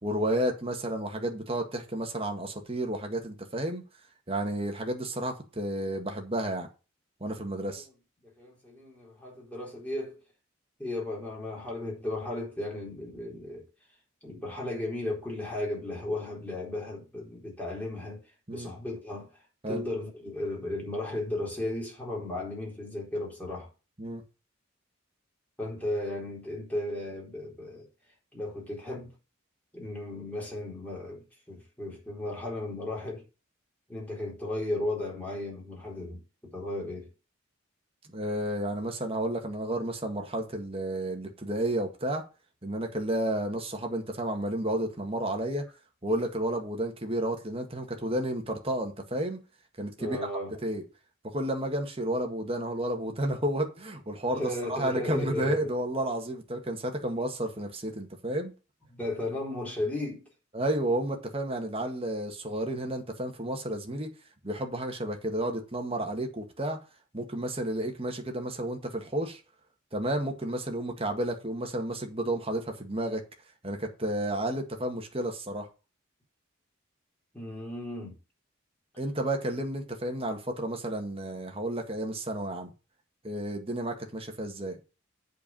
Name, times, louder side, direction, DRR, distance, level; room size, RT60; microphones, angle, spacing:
voice 1, 0.0-3.8 4.3-6.7 7.2-7.9 18.5-18.7 19.6-19.8 24.0-24.2 38.1-42.2 42.6-45.7 46.0-49.4 49.8-50.2 50.6-50.8 51.3-54.4 54.7-58.5 60.5-64.1 64.4-66.8 67.1-69.4 69.9-73.2 73.6-75.7 79.0-82.7 83.2-84.8, right 1 dB, 25° right, 1.8 m, -31 dB
voice 2, 8.4-10.1 10.8-13.7 14.2-18.2 18.5-19.3 19.7-23.7 25.6-27.9 28.3-29.1 29.7-33.2 33.9-37.1 50.0-50.6 54.3-55.7 58.9-60.3 77.3-78.2, left 1 dB, 5° left, 4.1 m, -35 dB
8.3 x 4.8 x 7.5 m
head